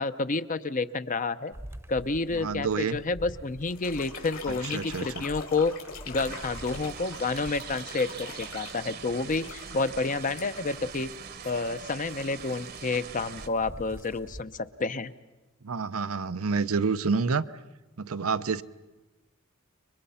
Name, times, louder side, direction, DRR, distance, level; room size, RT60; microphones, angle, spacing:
voice 1, 0.0-1.5 1.9-5.7 6.1-11.1 11.4-15.1, left 3 dB, 40° left, 12 dB, 0.7 m, -29 dB
sound 1, 1.5-10.1 10.5-14.4, right 1 dB, 10° right, 0.9 m, -47 dB
voice 2, 2.3-3.0 4.5-5.2 15.6-17.5 18.0-18.6, right 5 dB, 85° right, 12 dB, 0.7 m, -28 dB
sound 2, 3.6-11.6, left 4 dB, 70° left, 5.0 m, -43 dB
sound 3, 6.2-13.5, right 7 dB, 50° right, 1.0 m, -42 dB
29.0 x 23.5 x 5.7 m, 1.1 s
head